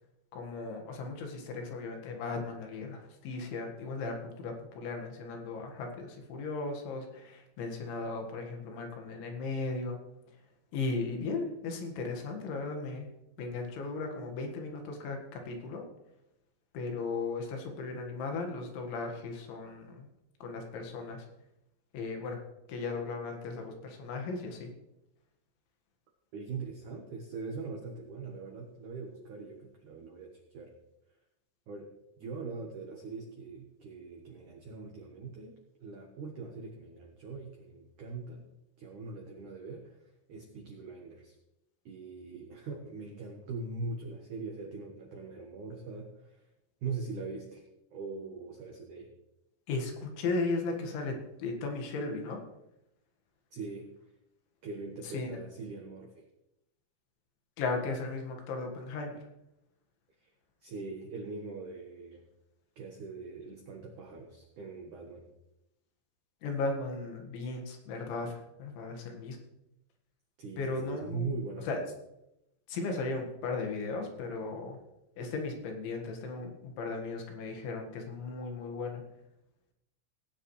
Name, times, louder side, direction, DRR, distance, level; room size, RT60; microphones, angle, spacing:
voice 1, 0.3-10.0 10.7-13.1 13.4-15.8 16.7-20.1 20.4-21.3 21.9-22.4 22.7-24.7 49.7-52.4 55.0-55.4 57.6-59.2 66.4-69.4 70.6-71.3 71.7-71.8 72.7-74.8 75.2-79.0, left 3 dB, 75° left, 3 dB, 4.1 m, -36 dB
voice 2, 26.3-30.7 31.7-31.9 32.2-38.5 38.8-41.4 41.9-46.5 46.8-47.7 47.9-49.1 53.5-53.9 54.6-56.3 60.2-60.3 60.6-62.2 62.8-65.3 70.4-71.8, right 4 dB, 70° right, 1 dB, 1.9 m, -42 dB
18.0 x 9.3 x 3.2 m, 0.87 s
omnidirectional pair, 5.4 m